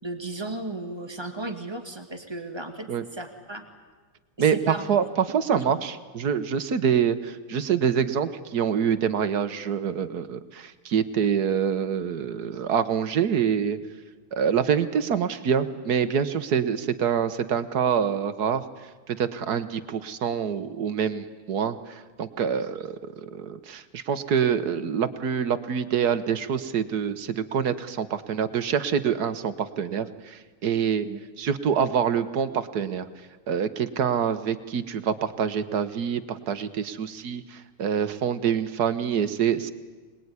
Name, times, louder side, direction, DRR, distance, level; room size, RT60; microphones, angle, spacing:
voice 1, 0.0-3.6 4.4-4.8 5.5-5.6 31.0-31.2, right 2 dB, 10° right, 2 dB, 2.3 m, -35 dB
voice 2, 4.4-13.8 14.3-18.6 19.1-21.8 22.2-23.0 23.3-31.1 31.4-33.1 33.5-39.7, right 7 dB, 55° right, 11 dB, 1.4 m, -26 dB
25.0 x 20.0 x 9.7 m, 1.3 s
omnidirectional pair, 2.4 m